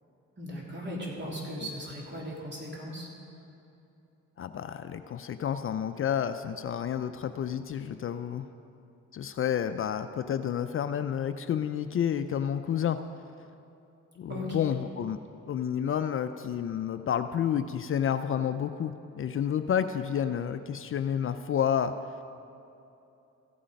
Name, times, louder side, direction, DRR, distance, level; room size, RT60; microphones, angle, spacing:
voice 1, 0.4-3.1 14.3-14.7, equal, 35° right, -3 dB, 3.2 m, -37 dB
voice 2, 4.4-8.5 9.1-13.0 14.2-15.2 15.5-21.9, left 9 dB, 45° left, 9 dB, 0.5 m, -30 dB
14.5 x 8.7 x 5.2 m, 2.8 s
cardioid pair, 90°, 30 cm